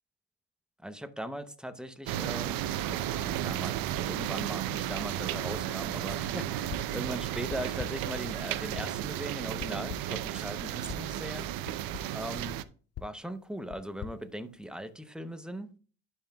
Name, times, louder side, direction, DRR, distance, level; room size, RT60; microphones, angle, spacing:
voice 1, 0.8-12.6 13.0-15.7, equal, ahead, 0.8 m, -40 dB
sound 1, 2.1-12.6, right 12 dB, 80° right, 0.6 m, -34 dB
sound 2, 6.7-7.1 7.5-8.2 8.8-9.1 9.6-10.3 10.9-11.2 11.7-12.2 13.0-15.0, left 10 dB, 50° left, 0.6 m, -45 dB
11.5 x 5.5 x 2.3 m
cardioid pair, 90°, 34 cm